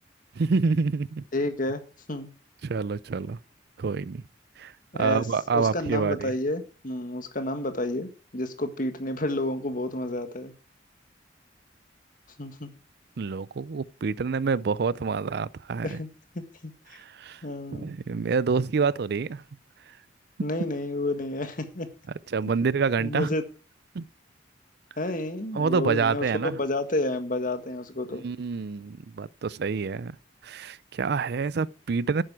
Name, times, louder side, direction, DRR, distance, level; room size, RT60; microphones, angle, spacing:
voice 1, 0.4-1.2 2.6-3.4 3.8-4.2 4.6-6.3 13.2-16.0 16.9-17.4 17.7-19.4 22.3-23.3 23.9-24.0 25.5-26.6 28.1-30.2 30.4-32.2, right 5 dB, 60° right, 0.5 m, -27 dB
voice 2, 1.3-1.8 2.1-2.3 4.9-5.2 5.5-10.5 12.4-12.7 15.8-16.1 16.3-16.7 17.4-17.9 20.4-21.9 23.0-23.4 25.0-28.2, left 1 dB, 50° left, 1.7 m, -30 dB
11.0 x 8.9 x 4.8 m
head